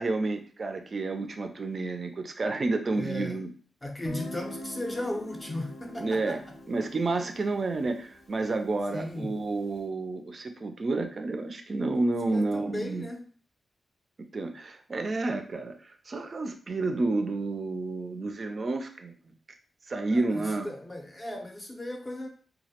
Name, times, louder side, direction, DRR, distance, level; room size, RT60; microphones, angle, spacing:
voice 1, 0.0-3.5 6.0-6.4 6.7-13.1 14.3-15.7 16.1-19.3 19.9-20.7, right 3 dB, 45° right, 6 dB, 0.3 m, -30 dB
voice 2, 2.9-3.4 3.8-6.4 8.9-9.4 12.3-13.3 20.1-22.3, left 1 dB, 20° left, 3 dB, 0.5 m, -36 dB
Guitar, 4.0-9.6, left 1 dB, 55° left, 0.7 m, -44 dB
2.3 x 2.0 x 2.8 m, 0.43 s
cardioid pair, 100°, 0 cm